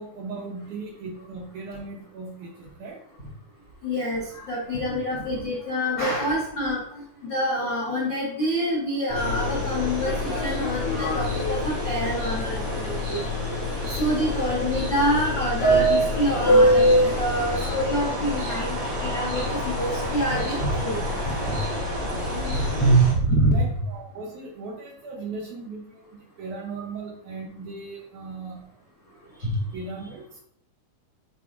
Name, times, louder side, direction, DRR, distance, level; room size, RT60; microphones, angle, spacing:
voice 1, 0.0-3.0 23.1-23.2 23.5-28.7 29.7-30.4, right 3 dB, 70° right, -1 dB, 1.9 m, -37 dB
voice 2, 3.8-6.8 7.2-13.2 13.9-21.6 22.5-23.6 29.4-29.5, right 1 dB, 80° left, -6 dB, 1.0 m, -26 dB
Subway metro underground, 9.1-22.9, equal, 50° left, 3.2 m, -25 dB
sound 1, 9.1-23.1, right 2 dB, 45° right, 1.6 m, -34 dB
9.5 x 4.6 x 2.5 m, 0.69 s
omnidirectional pair, 4.4 m